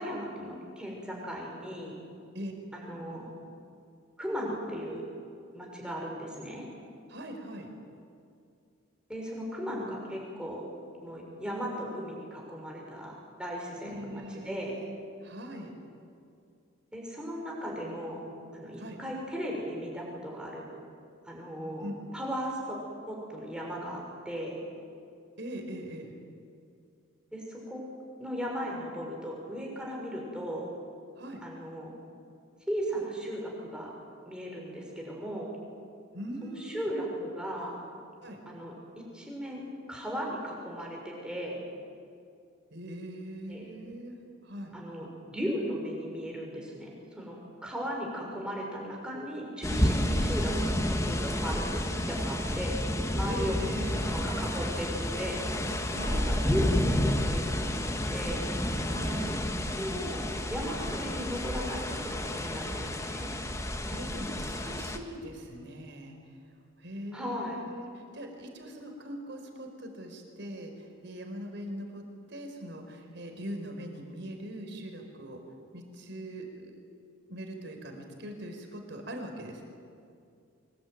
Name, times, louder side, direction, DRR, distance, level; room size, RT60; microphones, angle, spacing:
voice 1, 0.0-1.9 2.7-3.3 4.2-5.0 5.5-6.7 9.1-10.6 11.0-14.8 16.9-18.2 18.5-20.7 21.2-21.9 22.1-22.8 23.1-24.6 27.3-27.8 28.2-30.7 31.4-31.9 32.7-33.9 34.3-35.5 36.4-37.8 38.5-41.6 43.5-43.7 44.7-50.7 51.0-52.7 53.1-53.5 54.0-55.4 56.1-58.5 59.8-63.3 67.1-67.6, equal, 5° right, -2 dB, 6.1 m, -37 dB
voice 2, 7.1-7.7 13.8-15.7 18.8-19.0 21.8-22.0 25.4-26.1 31.2-31.4 36.1-37.0 38.2-38.4 42.7-44.8 50.2-50.3 53.3-54.1 55.9-56.2 58.9-59.3 63.9-66.2 66.8-75.4 75.7-76.7 77.3-79.6, right 1 dB, 55° right, 3 dB, 4.7 m, -41 dB
sound 1, 49.6-65.0, left 1 dB, 15° left, 1.5 m, -30 dB
25.5 x 21.5 x 9.5 m, 2.4 s
head